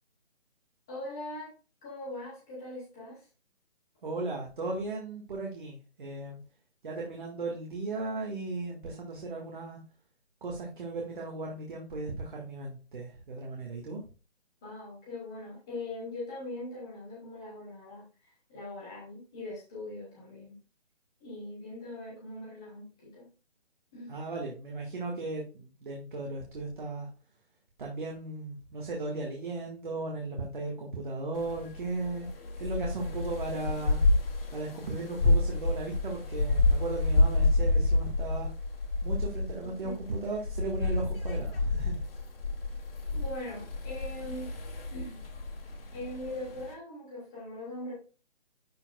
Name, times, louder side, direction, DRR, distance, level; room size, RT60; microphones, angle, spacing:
voice 1, 0.9-1.5 1.8-3.3 14.6-20.6 21.2-23.3 23.9-24.2 39.6-40.0 43.1-44.5 44.9-45.2 45.9-47.9, left 1 dB, 5° left, -6 dB, 0.6 m, -41 dB
voice 2, 4.0-6.4 6.8-9.8 10.4-14.0 24.1-27.1 27.8-32.3 32.6-34.0 34.5-38.5 39.0-42.0, right 2 dB, 45° right, -1 dB, 1.8 m, -36 dB
sound 1, 31.4-46.7, left 2 dB, 60° left, 2.3 m, -29 dB
11.5 x 4.7 x 2.3 m, 0.35 s
hypercardioid pair, 170°, 33 cm